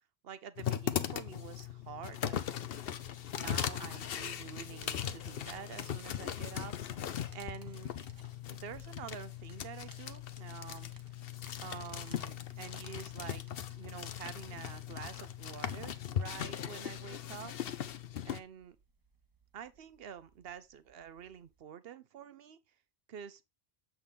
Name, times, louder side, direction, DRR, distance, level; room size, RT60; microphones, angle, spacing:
voice 1, 0.2-2.4 3.3-7.9 8.5-10.9 11.6-13.4 13.7-17.5 18.2-18.8 19.5-22.6 23.1-23.4, right 8 dB, 70° right, 0.9 m, -48 dB
sound 1, 0.6-18.4, left 9 dB, 70° left, 0.9 m, -39 dB
sound 2, 4.0-21.6, right 3 dB, 20° right, 0.9 m, -62 dB
Guitar, 4.1-4.2 4.7-8.8, left 2 dB, 40° left, 1.4 m, -64 dB
7.5 x 6.0 x 3.4 m
omnidirectional pair, 1.0 m